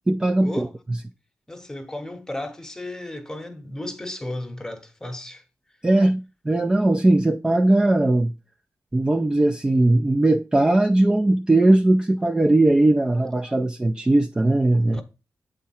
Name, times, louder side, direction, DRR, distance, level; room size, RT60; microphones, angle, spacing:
voice 1, 0.1-1.0 5.8-8.3 8.9-15.0, right 2 dB, 15° right, 0.3 m, -19 dB
voice 2, 1.5-5.4 14.9-15.0, left 1 dB, 10° left, 0.8 m, -34 dB
8.3 x 3.8 x 4.2 m
wide cardioid pair, 145°, 6 cm